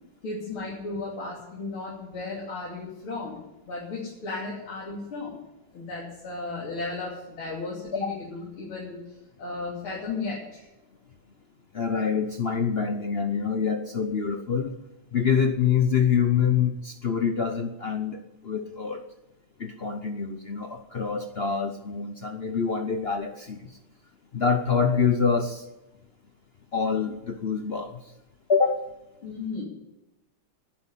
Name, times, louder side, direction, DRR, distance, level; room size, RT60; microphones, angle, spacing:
voice 1, 0.2-5.4 5.7-9.0 9.4-10.7 29.2-29.7, left 3 dB, 90° left, -5 dB, 3.8 m, -35 dB
voice 2, 11.7-14.8 15.1-19.0 19.6-23.8 24.3-25.6 26.7-28.0 28.5-28.9, left 6 dB, 55° left, 6 dB, 0.6 m, -26 dB
10.5 x 10.5 x 9.9 m, 0.95 s
omnidirectional pair, 2.2 m